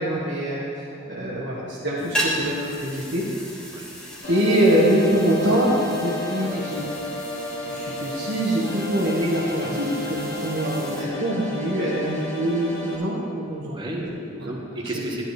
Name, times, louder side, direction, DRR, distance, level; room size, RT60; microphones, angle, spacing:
voice 1, 0.0-3.3 4.3-6.8 7.7-13.8 14.4-14.5, right 1 dB, 60° right, -7 dB, 1.7 m, -24 dB
sound 1, 2.0-11.0, equal, 5° left, 1.9 m, -35 dB
sound 2, 4.2-13.0, left 2 dB, 60° left, 1.8 m, -32 dB
voice 2, 13.7-15.2, right 1 dB, 25° right, -1 dB, 1.5 m, -33 dB
13.5 x 11.5 x 3.3 m, 2.6 s
head